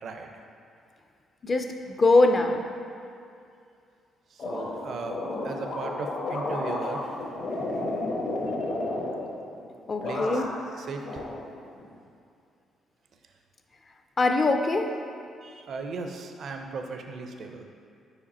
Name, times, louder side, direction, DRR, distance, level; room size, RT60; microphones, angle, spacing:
voice 1, 1.4-2.6 9.9-10.5 14.2-14.9, left 2 dB, 35° left, 5 dB, 0.5 m, -22 dB
voice 2, 4.3-7.0 8.6-8.7 10.0-10.3 10.8-11.3 15.4-17.6, right 4 dB, 60° right, 4 dB, 0.5 m, -37 dB
sound 1, 4.4-9.7 10.0-10.7 11.0-11.9, left 2 dB, 60° left, 1.1 m, -32 dB
5.0 x 4.9 x 4.2 m, 2.4 s
cardioid pair, 90°, 0 cm